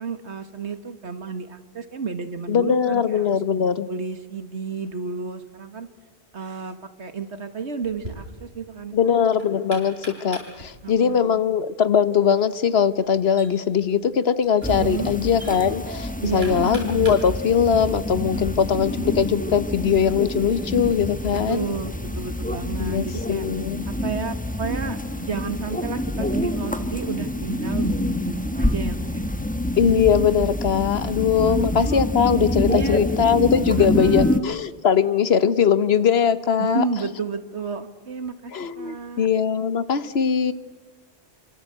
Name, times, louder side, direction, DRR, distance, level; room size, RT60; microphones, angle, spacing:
voice 1, 0.0-3.4 3.9-5.9 6.3-9.1 10.8-11.4 14.8-15.1 16.2-16.8 21.3-23.4 23.9-29.2 31.1-31.2 31.4-31.8 32.7-33.0 33.8-34.5 36.6-39.3, right 5 dB, 85° right, 9 dB, 2.0 m, -32 dB
voice 2, 2.5-3.9 8.9-10.0 10.2-21.7 22.8-23.8 29.8-36.8 38.5-40.5, left 7 dB, 65° left, 14 dB, 1.3 m, -21 dB
Knock, 7.8-18.4, right 1 dB, 65° right, 7.3 m, -44 dB
sound 1, 14.6-34.4, left 1 dB, 10° left, 1.1 m, -27 dB
27.5 x 25.0 x 8.1 m, 1.3 s
omnidirectional pair, 1.1 m